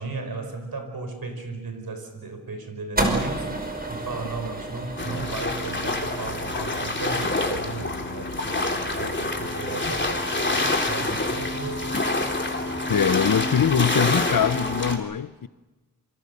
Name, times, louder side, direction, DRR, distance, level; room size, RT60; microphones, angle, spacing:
voice 1, 0.0-3.5 3.9-12.0 12.7-12.9, right 3 dB, 85° right, 4.8 m, -35 dB
sound 1, 3.0-9.3, right 1 dB, 25° right, 5.4 m, -32 dB
sound 2, 5.0-15.0, left 2 dB, 30° left, 3.3 m, -27 dB
voice 2, 12.9-15.5, left 8 dB, 70° left, 0.9 m, -23 dB
27.0 x 25.5 x 6.7 m
wide cardioid pair, 60°, 35 cm